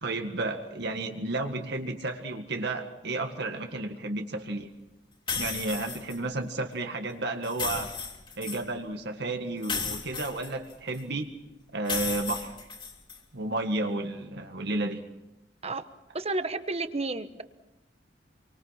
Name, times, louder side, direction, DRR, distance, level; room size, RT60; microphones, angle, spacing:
voice 1, 0.0-4.7 5.3-7.9 8.4-11.3 11.7-12.5 13.3-15.0, right 2 dB, 60° right, 4 dB, 1.9 m, -32 dB
sound 1, 5.3-6.2 7.4-8.6 9.6-11.0 11.8-13.2, left 5 dB, 30° left, 3.3 m, -34 dB
voice 2, 16.1-17.4, right 2 dB, 35° right, 10 dB, 1.2 m, -31 dB
27.5 x 24.5 x 5.8 m, 0.92 s
head